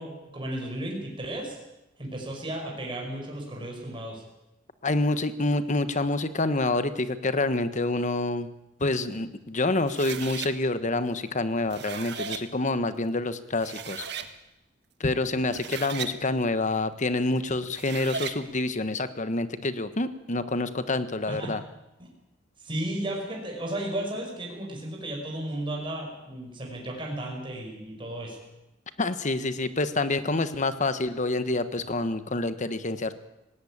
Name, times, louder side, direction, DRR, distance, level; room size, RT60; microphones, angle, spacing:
voice 1, 0.0-1.6 2.0-4.2 21.2-21.5 22.0-22.1 22.6-28.4, right 1 dB, 25° right, -1 dB, 5.6 m, -34 dB
voice 2, 4.8-8.5 8.8-14.0 15.0-21.6 29.0-33.1, left 2 dB, 40° left, 12 dB, 1.3 m, -27 dB
sound 1, 9.9-10.5 11.5-12.4 13.2-13.3 13.6-14.3 15.4-16.1 17.6-18.4, right 7 dB, 60° right, 1.5 m, -36 dB
18.5 x 17.0 x 8.8 m, 0.93 s
head